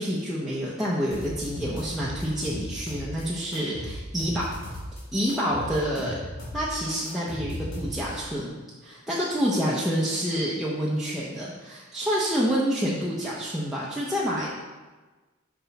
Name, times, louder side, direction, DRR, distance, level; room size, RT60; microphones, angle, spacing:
voice 1, 0.0-4.5 5.1-6.2 6.5-8.5 8.8-14.5, equal, ahead, -7 dB, 0.7 m, -28 dB
sound 1, 1.1-3.2 3.5-5.0 5.3-8.2, equal, 75° left, 2.2 m, -36 dB
6.1 x 5.6 x 4.0 m, 1.3 s
head